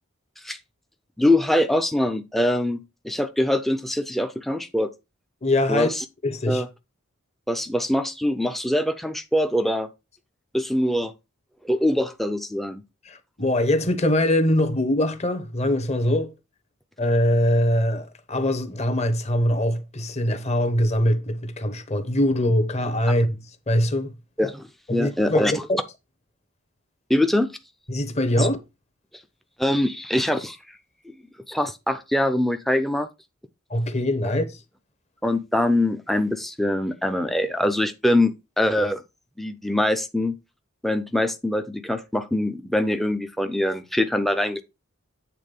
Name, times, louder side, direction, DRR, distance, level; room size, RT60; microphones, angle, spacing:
voice 1, 1.2-4.9 5.7-5.9 6.5-6.7 7.5-9.9 10.5-11.1 11.6-12.8 24.4-25.5 27.1-27.5 28.4-28.5 29.6-30.6 31.5-33.1 35.2-39.0 39.4-40.4 40.8-44.6, left 1 dB, ahead, 0.5 m, -23 dB
voice 2, 5.4-5.9 6.2-6.6 13.0-16.4 17.0-24.2 24.9-25.8 27.9-28.6 33.7-34.6, left 1 dB, 30° left, 0.9 m, -23 dB
8.5 x 3.6 x 5.3 m
head